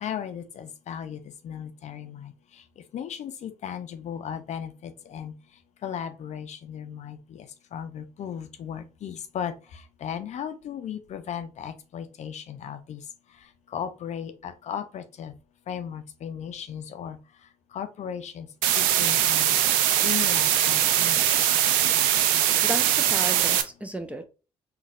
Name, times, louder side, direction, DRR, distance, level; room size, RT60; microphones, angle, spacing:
voice 1, 0.0-2.3 2.9-5.3 5.8-7.4 7.7-9.5 10.0-13.0 13.7-15.3 15.7-17.2 17.7-18.5 18.8-19.5 20.0-21.2, left 8 dB, 55° left, 0.6 m, -36 dB
sound 1, 18.6-23.6, right 11 dB, 75° right, 0.4 m, -22 dB
voice 2, 22.2-24.2, right 1 dB, 10° right, 0.7 m, -35 dB
3.9 x 2.4 x 2.4 m
hypercardioid pair, 45°, 14 cm